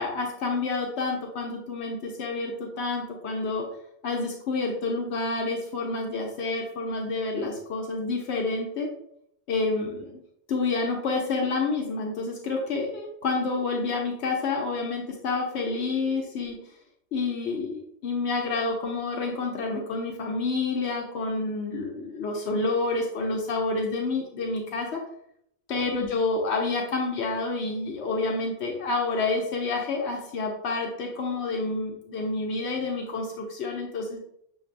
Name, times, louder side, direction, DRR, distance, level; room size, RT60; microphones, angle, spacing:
voice 1, 0.0-3.7 4.0-8.9 9.5-10.2 10.5-16.6 17.1-25.0 25.7-34.2, left 3 dB, 80° left, 0 dB, 1.0 m, -29 dB
6.4 x 2.6 x 2.5 m, 0.71 s
omnidirectional pair, 1.1 m